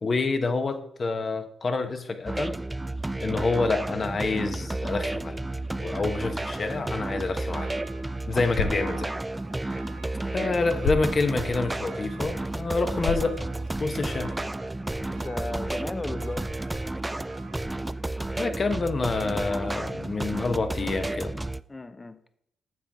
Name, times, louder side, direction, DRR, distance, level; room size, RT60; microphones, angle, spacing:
voice 1, 0.0-2.6 3.2-5.4 5.8-7.7 8.3-9.1 9.6-9.8 10.3-13.4 13.8-14.3 18.4-21.3, left 3 dB, 45° left, 8 dB, 1.1 m, -28 dB
sound 1, 2.3-21.6, right 2 dB, 15° right, 0.3 m, -32 dB
Church bell, 5.4-19.0 19.4-19.5, right 6 dB, 75° right, 1.0 m, -52 dB
sound 2, 7.3-14.2, left 4 dB, 85° left, 0.9 m, -37 dB
voice 2, 15.1-16.5 21.7-22.4, left 2 dB, 25° left, 12 dB, 0.8 m, -36 dB
9.5 x 7.3 x 3.6 m, 0.73 s
supercardioid pair, 45°, 0 cm